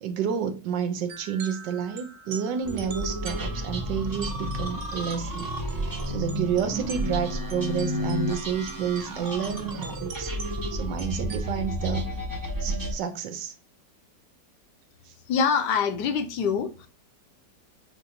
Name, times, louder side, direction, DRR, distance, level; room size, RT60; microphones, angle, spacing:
voice 1, 0.0-5.5 6.1-12.1 12.6-13.5 15.1-15.2, right 7 dB, 80° right, 1.4 m, -30 dB
sound 1, 1.1-11.5, right 6 dB, 55° right, 1.0 m, -44 dB
sound 2, 2.6-12.9, equal, 20° right, 0.5 m, -31 dB
voice 2, 15.3-16.9, left 6 dB, 75° left, 1.3 m, -25 dB
6.6 x 2.6 x 2.8 m
omnidirectional pair, 1.9 m